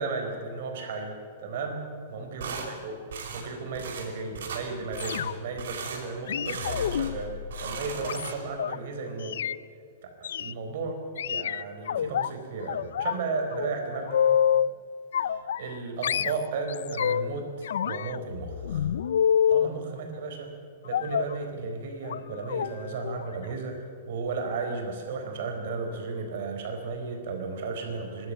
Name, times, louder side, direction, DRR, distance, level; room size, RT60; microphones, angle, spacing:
voice 1, 0.0-2.9 3.3-7.3 7.6-9.4 10.0-11.0 11.2-14.2 15.2-18.9 19.5-20.5 20.8-28.3, right 4 dB, 55° right, 4 dB, 4.4 m, -34 dB
sound 1, 2.4-2.7 3.1-3.5 3.7-4.1 4.3-4.6 4.9-5.2 5.6-6.0 6.4-7.2 7.4-8.6, right 5 dB, 80° right, 5.2 m, -37 dB
sound 2, 5.0-5.6 6.3-8.8 9.2-9.6 10.2-10.5 11.2-12.3 12.7-13.2 13.5-14.7 15.1-15.8 16.0-17.3 17.6-19.7 20.9-21.4 22.0-22.2 22.5-22.7 23.0-23.2 23.5-23.6, left 8 dB, 75° left, 0.5 m, -27 dB
22.0 x 12.5 x 9.8 m, 2.2 s
supercardioid pair, 170°, 0 cm